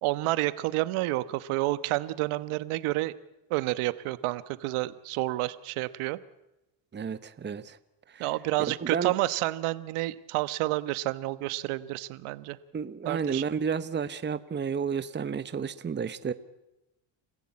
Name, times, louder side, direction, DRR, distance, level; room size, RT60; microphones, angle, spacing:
voice 1, 0.0-3.1 3.5-6.2 8.2-12.6 13.0-13.4, right 18 dB, 75° right, 14 dB, 1.3 m, -29 dB
voice 2, 6.9-7.8 8.1-8.3 8.7-9.1 12.7-16.3, right 6 dB, 20° right, 13 dB, 1.0 m, -31 dB
28.5 x 15.0 x 8.6 m, 0.94 s
cardioid pair, 105°, 49 cm